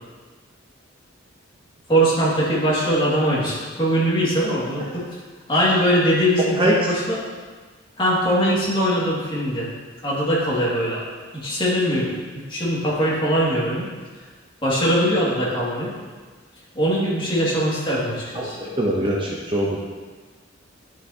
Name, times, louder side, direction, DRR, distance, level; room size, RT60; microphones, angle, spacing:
voice 1, 1.9-5.0 5.5-7.2 8.0-9.7 10.0-11.0 11.3-13.8 14.6-15.9 16.7-18.6, equal, 25° left, -7 dB, 2.2 m, -21 dB
voice 2, 18.4-19.8, right 1 dB, 25° right, -2 dB, 0.8 m, -23 dB
9.9 x 6.3 x 2.8 m, 1.4 s
head